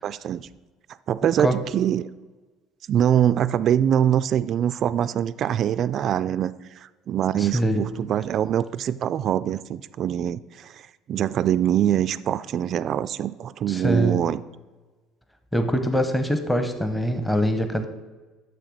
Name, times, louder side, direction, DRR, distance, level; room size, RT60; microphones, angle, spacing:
voice 1, 0.0-0.5 1.1-2.1 2.9-10.8 11.1-14.4, right 10 dB, 50° right, 15 dB, 0.3 m, -24 dB
voice 2, 7.4-7.8 13.7-14.2 15.5-17.9, equal, 5° left, 7 dB, 0.8 m, -23 dB
6.6 x 6.6 x 7.7 m, 1.3 s
cardioid pair, 110°, 0 cm